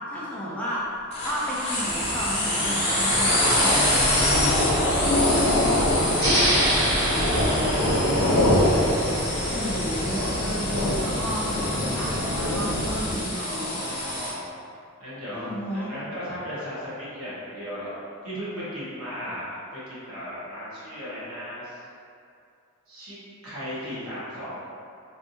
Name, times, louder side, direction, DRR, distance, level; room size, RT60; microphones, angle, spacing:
voice 1, 0.1-0.8 1.2-4.0 9.5-13.8 15.3-15.9, equal, 5° left, -7 dB, 0.4 m, -32 dB
sound 1, 1.1-14.3, left 1 dB, 30° left, 0.9 m, -27 dB
sound 2, 1.9-13.2, left 1 dB, 80° left, 0.5 m, -25 dB
voice 2, 4.7-8.8 13.3-14.6 15.0-18.0 18.2-21.8 22.9-23.2 23.4-24.5, equal, 80° right, -10 dB, 1.2 m, -36 dB
sound 3, 6.2-9.4, right 1 dB, 55° right, 0.9 m, -27 dB
3.3 x 2.6 x 2.6 m, 2.4 s
head